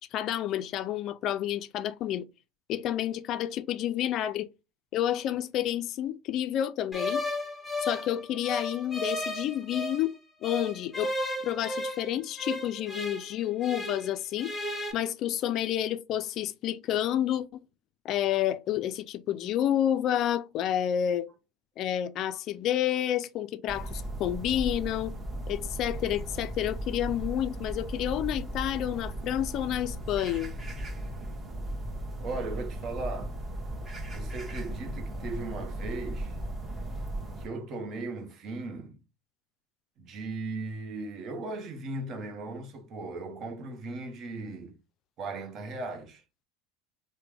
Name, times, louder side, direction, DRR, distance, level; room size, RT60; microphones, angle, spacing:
voice 1, 0.1-2.3 2.7-4.5 4.9-7.2 7.8-10.1 10.4-11.1 11.4-14.5 14.9-17.6 18.0-21.3 21.8-25.1 25.5-30.5, left 11 dB, 50° left, 0.3 m, -29 dB
sound 1, 6.9-10.1 10.4-14.1 14.4-14.9, left 1 dB, 5° left, 1.0 m, -34 dB
sound 2, 23.7-37.5, right 1 dB, 20° right, 1.1 m, -36 dB
voice 2, 32.2-33.3 34.1-36.4 37.4-39.0 40.0-44.8 45.2-46.2, right 3 dB, 45° right, 0.9 m, -37 dB
3.2 x 2.1 x 3.3 m
supercardioid pair, 105°, 0 cm